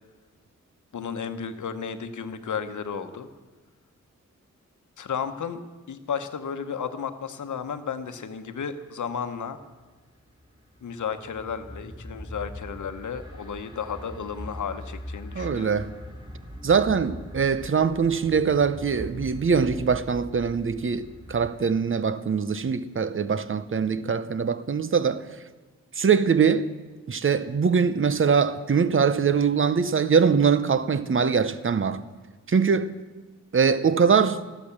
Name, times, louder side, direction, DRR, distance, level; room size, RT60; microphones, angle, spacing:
voice 1, 0.9-3.3 5.0-5.6 5.9-9.6 10.8-15.8, left 6 dB, 75° left, 1.1 m, -33 dB
sound 1, 9.8-21.5, equal, 15° right, 4.2 m, -41 dB
voice 2, 15.3-15.9 16.6-25.3 26.0-26.7 27.1-32.0 32.5-33.0 33.5-34.4, right 6 dB, 45° right, 0.8 m, -22 dB
14.0 x 11.5 x 7.3 m
cardioid pair, 60°, 30 cm